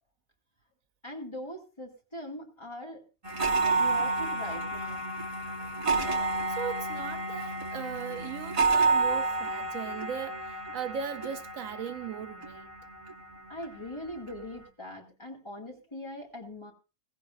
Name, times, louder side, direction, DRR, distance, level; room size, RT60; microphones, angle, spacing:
voice 1, 1.0-3.0 3.8-5.1 13.5-16.7, left 1 dB, 20° left, 2.2 m, -41 dB
sound 1, 3.2-14.6, right 3 dB, 25° right, 0.9 m, -30 dB
voice 2, 6.5-12.7, right 7 dB, 75° right, 1.2 m, -38 dB
16.5 x 15.5 x 2.6 m
omnidirectional pair, 1.4 m